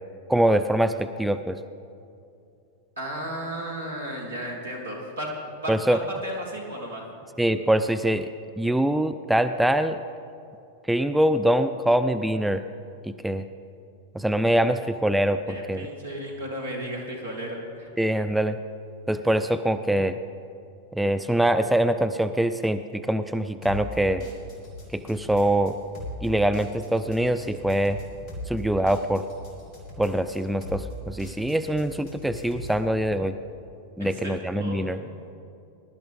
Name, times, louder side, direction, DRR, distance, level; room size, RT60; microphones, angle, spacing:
voice 1, 0.3-1.6 5.7-6.0 7.4-8.3 8.6-10.0 10.9-12.6 13.0-13.4 14.1-15.9 18.0-18.6 19.1-20.2 20.9-24.2 24.9-25.8 26.2-28.0 28.5-29.2 30.0-33.4 34.0-35.0, right 1 dB, 5° right, 9 dB, 0.4 m, -24 dB
voice 2, 3.0-7.0 15.5-17.9 34.0-35.1, equal, 75° right, -1 dB, 2.8 m, -34 dB
sound 1, 23.6-32.8, equal, 35° left, 3.1 m, -40 dB
21.0 x 12.0 x 3.6 m, 2.6 s
figure-of-eight pair, 90°, 0 cm